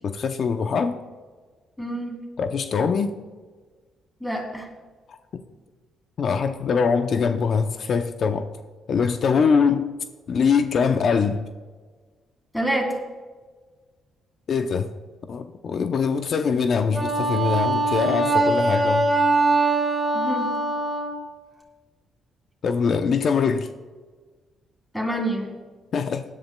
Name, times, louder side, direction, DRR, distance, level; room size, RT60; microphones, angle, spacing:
voice 1, 0.0-1.0 2.4-3.2 5.1-5.4 6.2-8.5 8.9-9.9 10.3-11.5 14.5-14.9 15.3-19.1 22.6-23.7 25.9-26.2, left 5 dB, 55° left, 8 dB, 0.6 m, -23 dB
voice 2, 1.8-2.2 4.2-4.7 12.5-13.0 20.1-20.5 24.9-25.5, right 1 dB, 10° left, 1 dB, 2.7 m, -27 dB
Wind instrument woodwind instrument, 16.9-21.2, right 2 dB, 15° right, 2.7 m, -22 dB
17.0 x 11.0 x 2.3 m, 1.4 s
cardioid pair, 90°, 0 cm